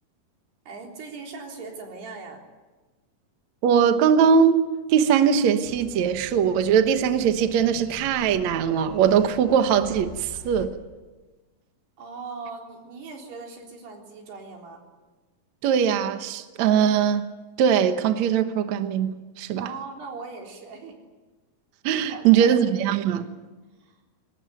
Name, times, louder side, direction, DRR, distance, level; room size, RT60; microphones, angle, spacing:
voice 1, 0.7-2.4 12.0-14.8 19.6-21.0 22.1-22.6 23.8-24.0, right 4 dB, 80° right, 5.9 m, -39 dB
voice 2, 3.6-4.6 4.9-10.7 15.6-17.2 17.6-19.1 19.4-19.7 21.8-23.3, right 7 dB, 60° right, 2.0 m, -21 dB
sound 1, 5.6-10.7, left 4 dB, 85° left, 5.4 m, -44 dB
23.0 x 20.0 x 9.2 m
omnidirectional pair, 4.6 m